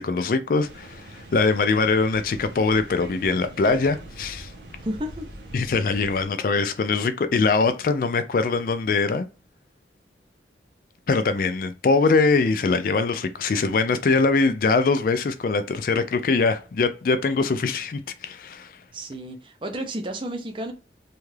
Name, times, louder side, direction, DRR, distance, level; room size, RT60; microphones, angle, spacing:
voice 1, 0.0-4.5 5.5-9.3 11.1-18.7, left 4 dB, 50° left, 0.3 m, -22 dB
sound 1, 0.6-6.2, right 1 dB, 80° right, 0.8 m, -42 dB
voice 2, 4.8-5.3 18.9-20.7, right 1 dB, 30° right, 0.5 m, -32 dB
2.7 x 2.3 x 3.2 m
head